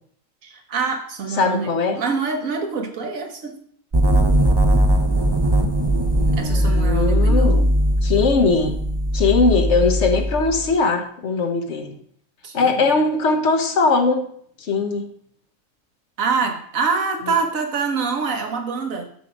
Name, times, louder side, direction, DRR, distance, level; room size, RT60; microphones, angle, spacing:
voice 1, 0.4-3.5 6.4-7.7 12.4-12.9 16.2-19.0, right 5 dB, 90° right, 4 dB, 1.6 m, -25 dB
voice 2, 1.4-2.0 6.2-7.6 8.0-8.8 9.1-11.9 12.5-14.2 14.6-15.0, left 4 dB, 60° left, 5 dB, 1.3 m, -20 dB
sound 1, 3.9-10.7, right 1 dB, 30° right, 0.5 m, -19 dB
6.8 x 6.1 x 5.2 m, 0.62 s
omnidirectional pair, 1.4 m